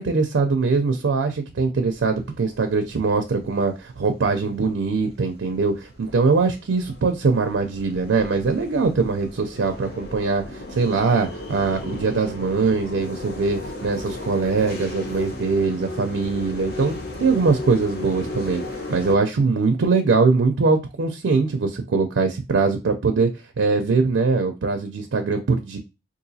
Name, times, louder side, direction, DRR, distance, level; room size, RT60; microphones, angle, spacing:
voice 1, 0.0-23.3 23.6-25.8, right 4 dB, 85° right, 0.5 m, -22 dB
sound 1, 1.9-19.1, left 2 dB, 55° left, 0.8 m, -36 dB
3.8 x 2.6 x 2.7 m
head